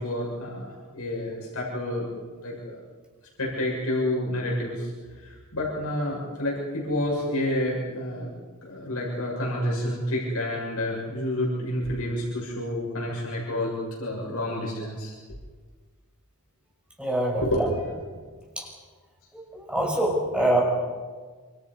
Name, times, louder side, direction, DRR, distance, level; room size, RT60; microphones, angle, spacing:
voice 1, 0.0-2.1 2.4-2.8 3.4-8.3 8.6-15.1 17.4-17.6, left 1 dB, 80° left, -3 dB, 7.1 m, -29 dB
voice 2, 17.0-17.7 18.6-18.7 19.3-20.6, right 1 dB, 5° right, -2 dB, 6.1 m, -25 dB
27.5 x 27.0 x 5.6 m, 1.5 s
head